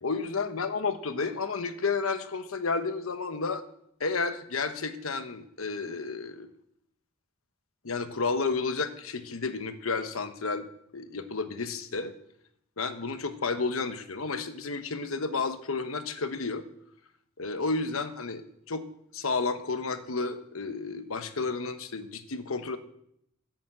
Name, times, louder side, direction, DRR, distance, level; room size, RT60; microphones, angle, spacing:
voice 1, 0.0-3.6 4.0-6.5 7.8-10.7 10.9-12.1 12.8-16.6 17.4-18.9 19.1-22.8, left 4 dB, 85° left, 10 dB, 1.1 m, -31 dB
11.5 x 7.2 x 7.7 m, 0.74 s
head